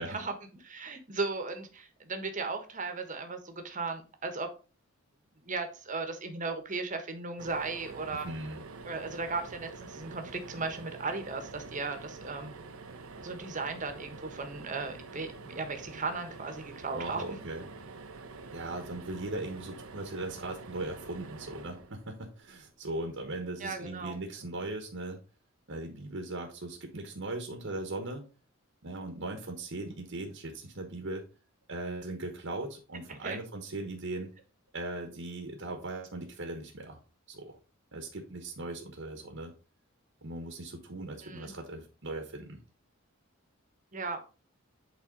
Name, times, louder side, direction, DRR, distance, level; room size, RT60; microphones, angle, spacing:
voice 1, 0.0-4.5 5.4-8.3 8.8-12.5 13.2-17.3 23.6-24.2 33.2-33.4 41.2-41.5 43.9-44.2, right 3 dB, 40° right, 7 dB, 1.3 m, -36 dB
sound 1, 7.4-22.6 24.3-24.5 24.8-24.9, right 3 dB, 85° right, 0.8 m, -47 dB
voice 2, 8.1-8.6 16.9-17.7 18.5-25.2 25.7-28.3 28.8-31.2 31.7-34.3 34.7-37.0 37.3-37.6 37.9-39.5 40.2-42.6, right 2 dB, 65° right, 3 dB, 1.3 m, -39 dB
8.5 x 4.1 x 3.9 m, 0.34 s
head